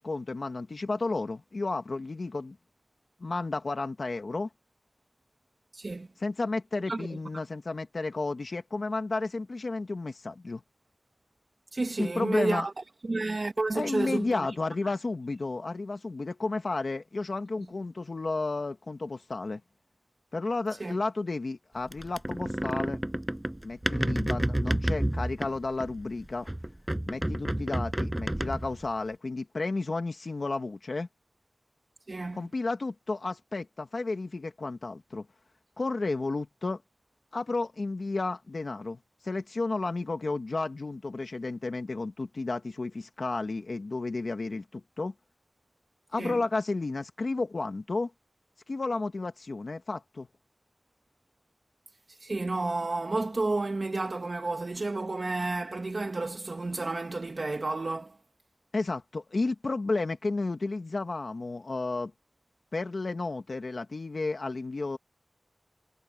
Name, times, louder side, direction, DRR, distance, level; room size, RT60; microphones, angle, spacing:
voice 1, 0.0-2.6 3.2-4.5 6.2-10.6 12.0-12.7 13.7-19.6 20.3-23.0 23.6-26.5 27.1-31.1 32.3-35.3 35.8-36.8 37.3-45.1 46.1-48.1 48.7-50.3 58.7-62.1 62.7-65.0, left 3 dB, 85° left, 1.7 m, -32 dB
voice 2, 5.7-6.1 6.9-7.2 11.7-12.7 13.0-14.5 14.8-14.9 20.8-20.9 32.1-32.5 46.2-46.4 52.1-58.2, right 2 dB, 70° right, 1.3 m, -31 dB
sound 1, 21.9-26.1 26.5-28.9, right 1 dB, 20° right, 7.5 m, -30 dB
wide cardioid pair, 45°, 0 cm